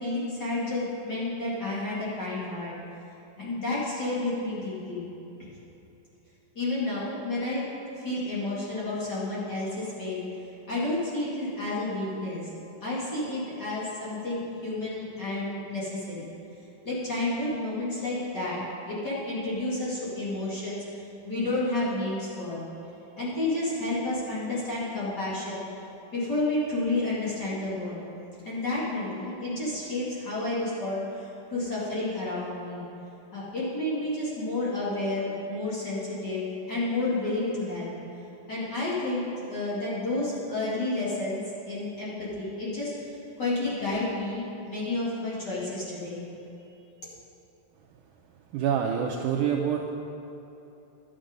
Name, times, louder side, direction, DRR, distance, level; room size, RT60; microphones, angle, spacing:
voice 1, 0.0-2.7 3.4-5.1 5.5-5.6 6.5-7.6 8.0-12.5 12.8-16.3 16.8-18.6 18.9-22.7 23.2-25.7 26.1-28.1 28.4-32.8 33.3-37.9 38.5-46.2 46.7-46.8, left 2 dB, 35° left, -8 dB, 2.4 m, -31 dB
voice 2, 48.5-49.9, right 8 dB, 80° right, 0 dB, 1.8 m, -26 dB
11.5 x 8.9 x 5.2 m, 2.9 s
omnidirectional pair, 4.1 m